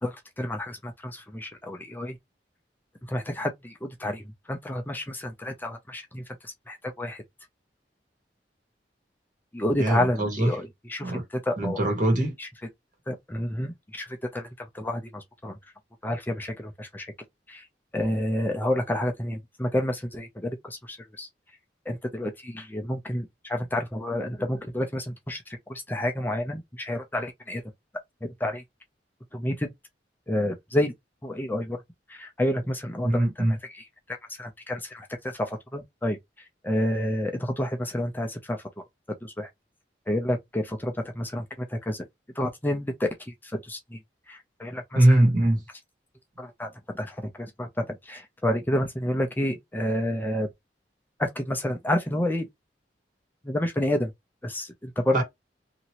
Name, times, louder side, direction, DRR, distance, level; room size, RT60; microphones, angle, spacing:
voice 1, 0.0-2.2 3.1-7.2 9.5-11.8 12.4-12.5 13.1-15.6 16.0-17.1 17.5-17.7 17.9-21.3 21.9-27.6 28.4-28.6 29.3-29.7 30.3-30.9 31.2-31.8 32.1-36.2 36.6-38.6 39.2-39.5 40.1-42.0 42.4-44.0 44.3-45.2 46.4-50.5 51.2-52.5 53.4-54.1 54.4-55.2, left 1 dB, 10° left, 0.5 m, -30 dB
voice 2, 9.8-10.5 11.0-11.2 11.6-12.3 33.0-33.6 44.9-45.6 55.1-55.2, right 1 dB, 50° right, 1.5 m, -22 dB
2.9 x 2.7 x 2.9 m
head